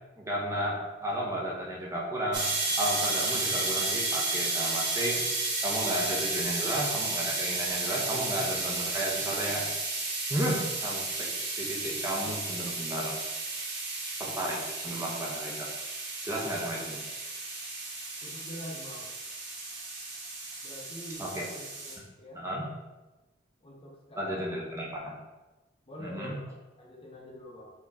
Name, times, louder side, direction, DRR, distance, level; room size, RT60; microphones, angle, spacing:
voice 1, 0.2-2.5 2.8-5.2 5.6-9.7 10.3-13.2 14.2-15.7 16.2-17.0 21.2-21.5 22.3-22.6 24.2-25.1 26.0-26.4, equal, 15° right, -3 dB, 0.7 m, -33 dB
sound 1, 2.3-22.0, right 3 dB, 60° right, 1.0 m, -33 dB
voice 2, 18.2-19.1 20.6-22.4 23.6-24.6 25.9-27.7, equal, 30° left, -1 dB, 0.7 m, -45 dB
4.3 x 2.9 x 3.6 m, 1.1 s
head